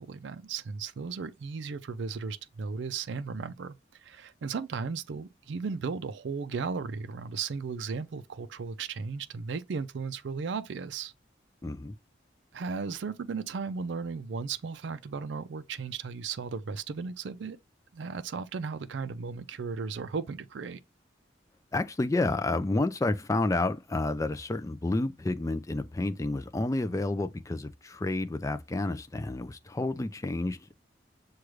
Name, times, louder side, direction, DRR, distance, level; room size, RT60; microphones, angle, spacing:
voice 1, 0.0-11.1 12.5-17.6 17.9-20.8, right 5 dB, 70° right, 0.4 m, -35 dB
voice 2, 11.6-12.0 21.7-30.7, left 2 dB, 15° left, 0.4 m, -30 dB
6.2 x 2.3 x 3.1 m
head